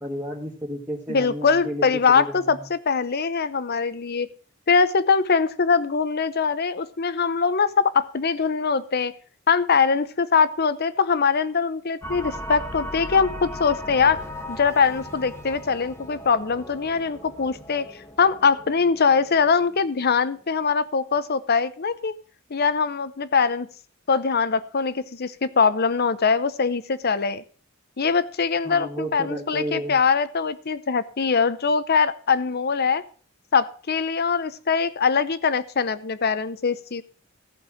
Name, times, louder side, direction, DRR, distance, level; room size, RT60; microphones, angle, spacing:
voice 1, 0.0-2.7 28.6-30.0, equal, 10° right, -4 dB, 1.8 m, -32 dB
voice 2, 1.1-4.3 4.7-9.1 9.5-14.2 14.5-17.9 18.2-22.1 22.5-23.7 24.1-27.4 28.0-33.0 33.5-37.0, left 5 dB, 50° left, 15 dB, 0.7 m, -22 dB
sound 1, 12.0-20.1, left 1 dB, 15° left, 1.2 m, -37 dB
14.5 x 5.5 x 6.3 m, 0.42 s
head